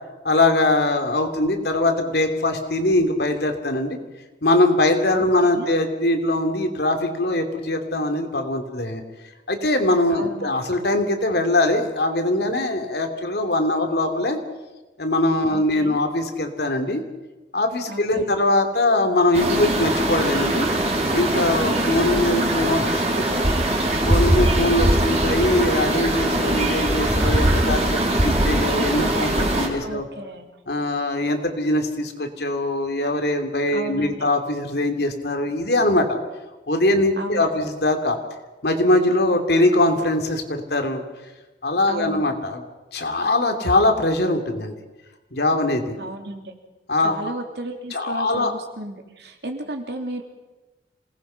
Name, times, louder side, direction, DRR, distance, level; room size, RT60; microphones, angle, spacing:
voice 1, 0.2-4.0 4.4-9.0 9.5-14.4 15.0-17.0 17.5-20.7 21.1-23.0 24.0-30.1 30.7-36.2 36.7-38.2 38.6-41.0 41.6-42.6 42.9-44.7 45.3-46.0 46.9-47.1 47.9-48.5, left 2 dB, 60° left, 5 dB, 2.9 m, -22 dB
voice 2, 5.1-5.7 10.1-10.5 15.5-16.0 17.9-18.4 22.1-23.5 29.8-30.5 33.7-34.3 37.2-37.6 41.8-42.2 46.0-46.5 47.0-50.2, right 1 dB, 65° right, 4 dB, 3.1 m, -34 dB
sound 1, 19.3-29.7, right 1 dB, 35° right, 4.9 m, -21 dB
27.5 x 19.5 x 5.7 m, 1.1 s
head